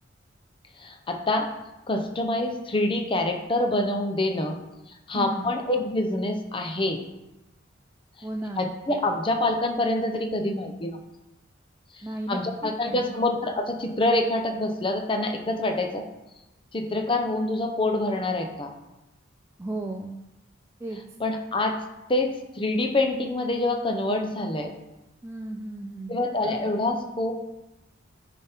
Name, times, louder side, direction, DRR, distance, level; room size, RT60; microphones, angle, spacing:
voice 1, 0.8-1.5 1.9-4.6 5.1-7.0 8.6-11.0 11.9-12.0 12.3-16.1 16.7-18.7 21.2-21.8 22.1-24.7 26.1-27.4, left 2 dB, 25° left, 4 dB, 0.7 m, -26 dB
voice 2, 5.1-5.5 8.2-8.7 12.0-13.2 19.6-20.2 20.8-21.0 25.2-26.2, right 1 dB, 15° right, 2 dB, 0.3 m, -34 dB
10.0 x 3.5 x 4.4 m, 0.97 s
head